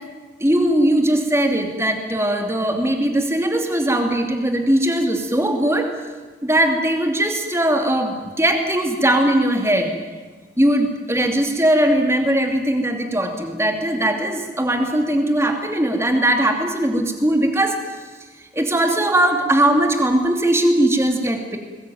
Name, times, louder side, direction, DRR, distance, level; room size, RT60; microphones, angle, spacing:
voice 1, 0.4-5.9 6.4-9.9 10.6-17.8 18.5-21.6, right 1 dB, 15° right, 4 dB, 2.7 m, -19 dB
22.0 x 20.5 x 9.3 m, 1.4 s
head